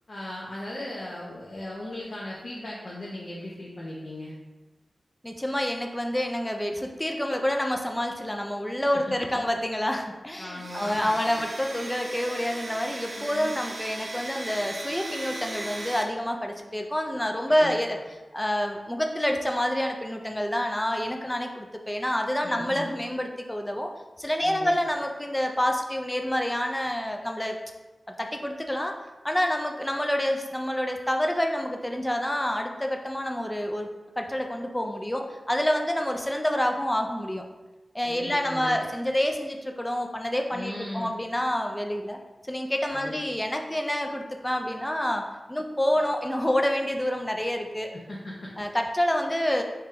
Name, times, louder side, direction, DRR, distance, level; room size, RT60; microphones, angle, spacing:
voice 1, 0.1-4.3 8.9-9.4 10.4-11.0 13.2-13.5 17.5-17.8 22.4-22.9 24.4-24.7 38.1-38.8 40.5-41.1 42.9-43.1 47.9-48.5, left 1 dB, 55° left, -5 dB, 0.7 m, -38 dB
voice 2, 5.2-18.0 18.3-23.9 24.2-27.6 28.2-28.9 29.2-33.9 34.2-37.4 37.9-42.2 42.5-45.2 45.5-47.9 48.6-49.6, equal, 10° left, 3 dB, 0.4 m, -28 dB
Domestic sounds home sounds, 10.5-16.0, right 2 dB, 50° right, 0.5 m, -38 dB
3.2 x 2.9 x 3.7 m, 1.1 s
wide cardioid pair, 75°, 0 cm